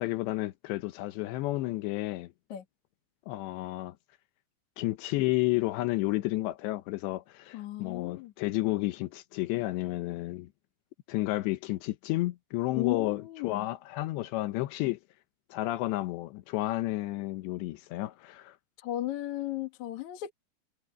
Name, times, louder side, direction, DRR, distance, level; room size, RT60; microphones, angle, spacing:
voice 1, 0.0-2.3 3.3-3.9 4.8-10.5 11.1-15.0 15.5-18.6, left 18 dB, 80° left, 2.8 m, -31 dB
voice 2, 7.5-8.3 12.7-13.7 18.8-20.3, left 14 dB, 55° left, 2.4 m, -35 dB
omnidirectional pair, 5.5 m